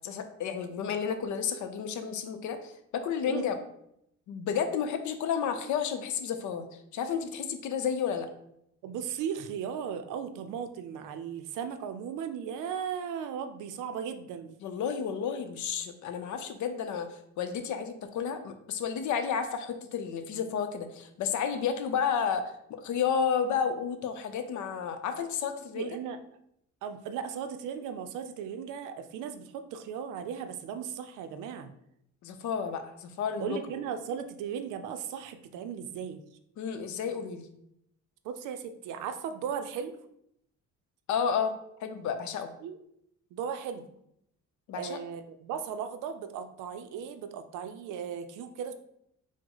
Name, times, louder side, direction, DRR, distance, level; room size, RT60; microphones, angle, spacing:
voice 1, 0.0-3.6 4.3-8.3 14.6-22.4 22.7-25.9 32.2-33.6 36.6-37.5 41.1-41.5 41.8-42.5 44.7-45.0, left 7 dB, 75° left, 8 dB, 0.6 m, -31 dB
voice 2, 8.8-14.6 25.7-26.2 26.8-31.7 33.4-36.2 38.2-40.0 42.6-42.8 43.3-43.9 44.8-48.7, right 7 dB, 85° right, 8 dB, 0.5 m, -37 dB
4.8 x 2.1 x 3.8 m, 0.76 s
cardioid pair, 90°, 30 cm